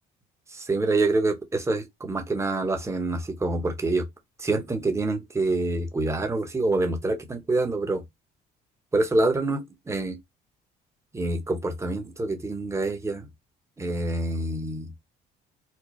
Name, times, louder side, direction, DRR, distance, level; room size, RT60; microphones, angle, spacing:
voice 1, 0.5-4.1 4.4-8.0 8.9-10.2 11.1-13.3 13.8-14.9, right 2 dB, 15° right, 0.9 m, -26 dB
4.3 x 2.1 x 3.0 m
cardioid pair, 110°, 17 cm